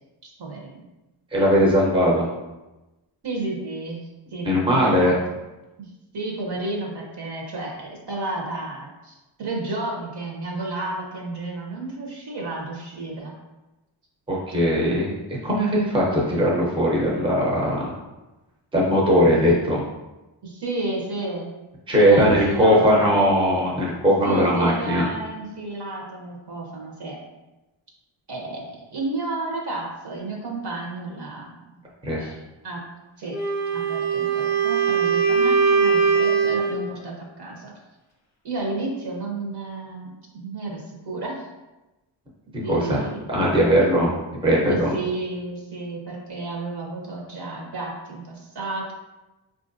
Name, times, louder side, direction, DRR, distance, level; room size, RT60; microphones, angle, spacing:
voice 1, 0.2-0.9 3.2-4.0 4.3-5.4 5.8-13.3 16.2-16.3 19.4-19.7 20.4-21.5 21.9-23.1 24.2-27.2 28.3-31.7 32.2-32.3 32.6-32.8 33.2-33.4 33.7-37.7 38.4-41.5 42.6-43.3 44.7-48.9, right 2 dB, 55° right, -1 dB, 0.8 m, -32 dB
voice 2, 1.3-2.3 4.4-5.1 14.3-15.1 15.4-17.9 18.7-19.8 21.9-25.1 32.0-32.3 42.7-44.1 44.4-44.9, equal, 10° right, -4 dB, 0.6 m, -19 dB
Wind instrument woodwind instrument, 33.3-36.8, right 5 dB, 35° left, 0.7 m, -21 dB
4.6 x 2.5 x 2.5 m, 1.0 s
wide cardioid pair, 155°, 48 cm